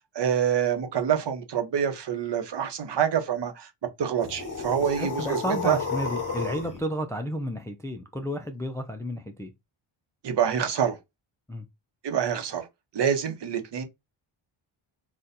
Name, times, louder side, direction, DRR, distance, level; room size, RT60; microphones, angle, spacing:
voice 1, 0.1-3.7 4.0-5.8 10.2-11.0 12.0-12.7 12.9-13.8, right 8 dB, 55° right, 0.9 m, -26 dB
sound 1, 4.2-6.8, left 5 dB, 40° left, 1.3 m, -32 dB
voice 2, 5.0-9.5 11.5-11.6, equal, 5° left, 0.3 m, -32 dB
4.2 x 2.4 x 2.6 m
cardioid pair, 105°, 49 cm